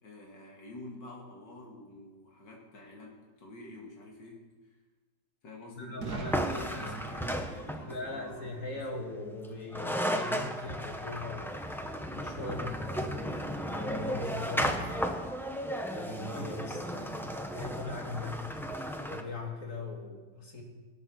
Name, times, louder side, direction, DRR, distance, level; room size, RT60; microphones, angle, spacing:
voice 1, 0.0-4.8 5.4-8.9, left 2 dB, 85° left, -1 dB, 2.7 m, -48 dB
voice 2, 5.7-7.2 7.8-11.6 12.1-15.2 15.8-18.4 18.7-20.6, left 2 dB, 45° left, 1 dB, 2.5 m, -40 dB
Boom, 6.0-9.8, right 4 dB, 60° right, 1.6 m, -44 dB
sound 1, 6.3-8.1 9.4-9.5 9.7-19.2, equal, 5° left, 0.4 m, -34 dB
17.5 x 8.9 x 6.4 m, 1.3 s
omnidirectional pair, 1.9 m